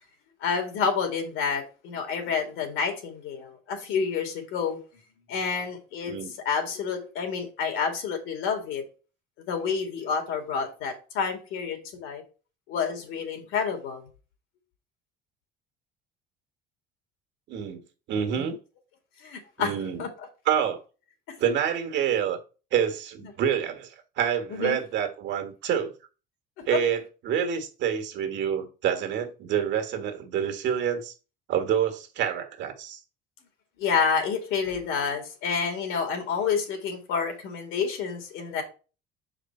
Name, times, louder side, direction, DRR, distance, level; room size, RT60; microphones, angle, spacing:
voice 1, 0.4-4.8 5.3-6.2 6.4-8.9 9.4-12.2 12.7-14.0 18.4-18.5 19.2-19.7 20.0-20.3 21.3-21.4 23.2-23.3 24.5-24.8 26.6-26.8 33.8-38.6, left 6 dB, 70° left, 2.5 m, -29 dB
voice 2, 17.5-17.8 18.1-18.6 19.6-20.0 20.4-20.8 21.4-22.4 22.7-25.9 26.7-31.1 31.5-33.0, right 8 dB, 60° right, 1.6 m, -27 dB
6.8 x 5.0 x 4.3 m
cardioid pair, 140°, 21 cm